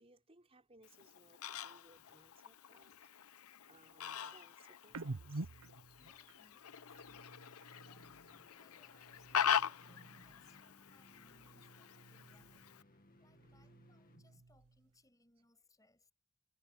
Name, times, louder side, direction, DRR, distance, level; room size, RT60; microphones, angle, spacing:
voice 1, 0.0-2.9 3.7-5.5 13.4-13.7, right 2 dB, 25° right, 5.9 m, -65 dB
Fowl, 0.8-12.8, left 8 dB, 80° left, 0.8 m, -42 dB
sound 1, 4.9-8.5 8.8-10.6 10.9-12.8 13.1-15.0, right 2 dB, 80° right, 0.9 m, -51 dB
voice 2, 6.0-12.9 13.2-16.1, left 2 dB, 15° left, 6.4 m, -72 dB
sound 2, 6.9-14.6, left 1 dB, 40° left, 2.1 m, -66 dB
head